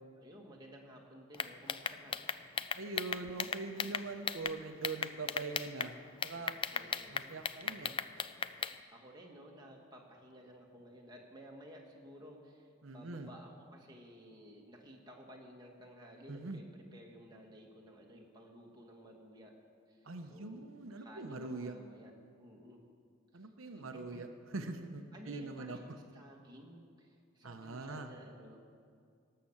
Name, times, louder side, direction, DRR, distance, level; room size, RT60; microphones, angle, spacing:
voice 1, 0.2-2.2 6.7-7.2 8.9-19.5 19.9-22.1 22.4-22.8 23.6-24.2 25.1-25.9 26.1-28.6, equal, 20° right, 0 dB, 1.7 m, -55 dB
sound 1, 1.3-4.5 4.8-5.9 6.2-8.7, left 6 dB, 25° left, 0.3 m, -36 dB
voice 2, 2.7-5.9 6.2-6.6 7.1-7.9 12.8-13.3 16.3-16.6 20.0-21.8 23.3-24.3 24.5-25.8 27.4-28.1, right 3 dB, 85° right, 6 dB, 0.8 m, -42 dB
18.0 x 6.7 x 7.2 m, 2.3 s
head